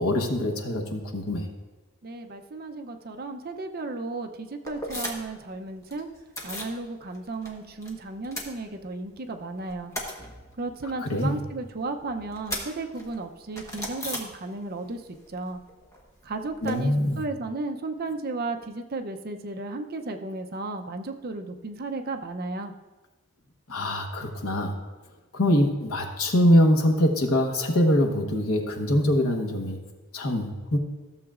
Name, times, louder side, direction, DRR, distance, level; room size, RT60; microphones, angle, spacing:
voice 1, 0.0-1.5 11.0-11.4 16.6-17.2 23.7-24.7 25.3-29.8 30.1-30.8, left 1 dB, 80° left, 2 dB, 1.2 m, -23 dB
voice 2, 2.0-6.1 6.4-9.9 10.6-15.0 15.3-15.6 16.2-22.7, right 3 dB, 45° right, 5 dB, 0.6 m, -34 dB
sound 1, 4.6-5.4 5.7-6.8 7.1-9.2 9.5-14.9 15.1-16.7, left 1 dB, 15° left, 1.1 m, -38 dB
15.0 x 7.1 x 2.4 m, 1.2 s
head